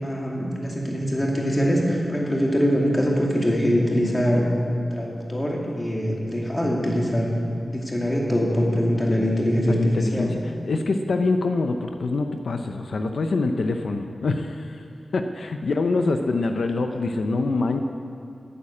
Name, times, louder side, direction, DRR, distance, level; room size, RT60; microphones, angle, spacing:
voice 1, 0.0-4.4 4.9-7.3 7.7-10.3 16.9-17.0, equal, 20° left, -2 dB, 2.4 m, -23 dB
voice 2, 9.7-14.8 15.1-17.8, left 3 dB, 85° left, 6 dB, 0.7 m, -25 dB
12.5 x 8.7 x 8.5 m, 2.5 s
wide cardioid pair, 125°, 0 cm